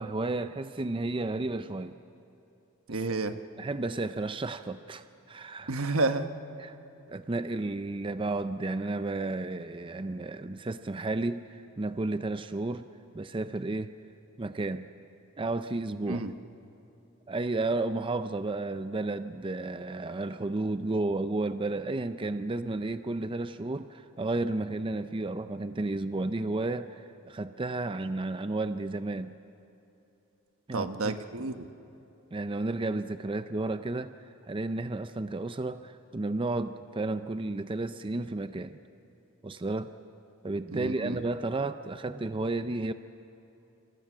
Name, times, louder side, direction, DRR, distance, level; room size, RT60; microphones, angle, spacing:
voice 1, 0.0-2.0 2.9-3.0 3.6-5.7 6.6-6.8 7.1-12.9 13.1-13.9 14.4-14.9 15.4-16.2 17.3-29.3 30.7-31.1 32.3-34.2 34.4-38.8 39.4-39.9 40.4-42.9, right 2 dB, 25° right, 11 dB, 0.5 m, -32 dB
voice 2, 2.9-3.4 5.7-6.3 16.1-16.3 30.7-31.7 40.7-41.2, right 3 dB, 75° right, 8 dB, 1.2 m, -30 dB
28.5 x 27.0 x 6.1 m, 2.9 s
head